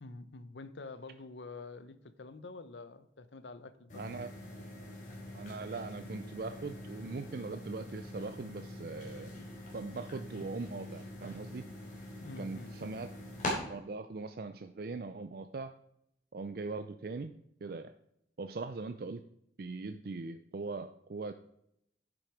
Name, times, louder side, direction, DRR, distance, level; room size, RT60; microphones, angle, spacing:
voice 1, 0.0-4.0 12.2-12.8, left 3 dB, 80° left, 12 dB, 0.8 m, -47 dB
sound 1, 3.9-13.5, left 1 dB, 45° left, 3.7 m, -44 dB
voice 2, 4.0-4.3 5.3-9.5 9.7-11.7 12.4-13.1 13.5-15.7 16.3-17.3 17.6-17.9 18.4-19.3 19.6-21.3, right 3 dB, 55° right, 9 dB, 0.5 m, -41 dB
10.0 x 6.2 x 4.9 m, 0.76 s
head